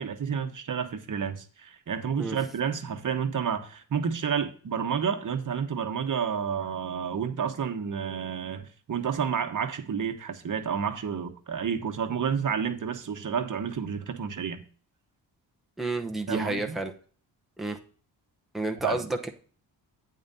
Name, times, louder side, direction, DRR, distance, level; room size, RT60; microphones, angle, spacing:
voice 1, 0.0-14.6 16.3-16.8 18.8-19.0, right 7 dB, 50° right, 1.2 m, -30 dB
voice 2, 15.8-16.9 17.6-17.8 18.5-19.3, right 2 dB, ahead, 0.9 m, -30 dB
8.9 x 8.7 x 2.8 m
cardioid pair, 90°, 41 cm